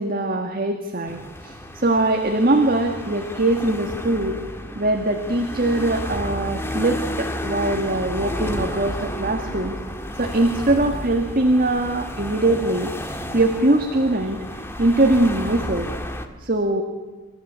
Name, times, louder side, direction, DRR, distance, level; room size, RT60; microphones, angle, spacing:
voice 1, 0.0-4.4 4.8-9.7 10.1-14.4 14.8-15.9 16.4-16.8, right 2 dB, 40° right, 4 dB, 1.8 m, -22 dB
sound 1, 1.1-16.3, left 1 dB, 10° left, 1.5 m, -32 dB
27.5 x 14.5 x 8.8 m, 1.3 s
head